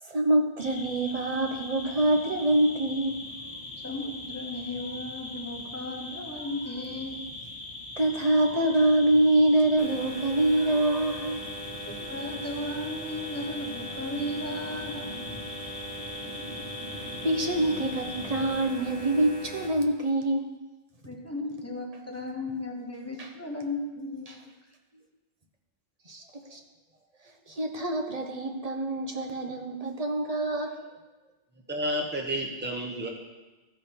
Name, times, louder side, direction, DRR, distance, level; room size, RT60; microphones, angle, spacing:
voice 1, 0.0-3.6 6.4-6.5 8.0-11.4 16.9-20.5 23.2-23.3 26.1-26.6 27.5-30.8, right 1 dB, 40° right, 4 dB, 1.0 m, -25 dB
sound 1, 0.6-18.7, left 2 dB, 50° left, 1.4 m, -40 dB
voice 2, 3.8-7.2 11.9-15.1 21.0-24.3, left 1 dB, 15° left, -1 dB, 1.2 m, -35 dB
sound 2, 9.8-19.7, right 1 dB, 60° right, 2.8 m, -41 dB
voice 3, 31.7-33.1, equal, 10° right, 0 dB, 1.0 m, -30 dB
14.0 x 5.2 x 4.4 m, 1.2 s
omnidirectional pair, 1.1 m